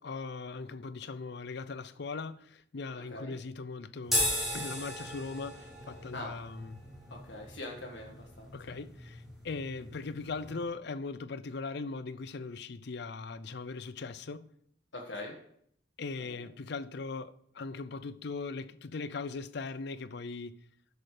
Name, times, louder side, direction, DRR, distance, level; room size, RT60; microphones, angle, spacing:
voice 1, 0.0-6.8 8.5-14.5 16.0-20.6, left 4 dB, 60° left, 0.5 m, -39 dB
voice 2, 2.9-3.3 6.1-6.3 7.1-8.8 14.9-15.4 16.3-16.5, left 2 dB, 75° left, 1.6 m, -43 dB
sound 1, 4.0-10.6, left 1 dB, ahead, 4.0 m, -37 dB
13.0 x 6.5 x 5.0 m
head